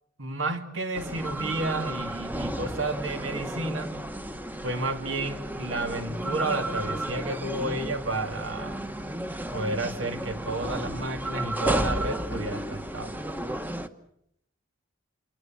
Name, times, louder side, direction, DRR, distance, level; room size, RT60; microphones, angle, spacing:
voice 1, 0.2-3.9 4.6-8.9 9.5-13.2, right 2 dB, 75° right, 6 dB, 2.6 m, -31 dB
sound 1, 0.9-13.9, right 1 dB, 10° right, 1.1 m, -33 dB
27.5 x 23.5 x 7.4 m, 0.76 s
head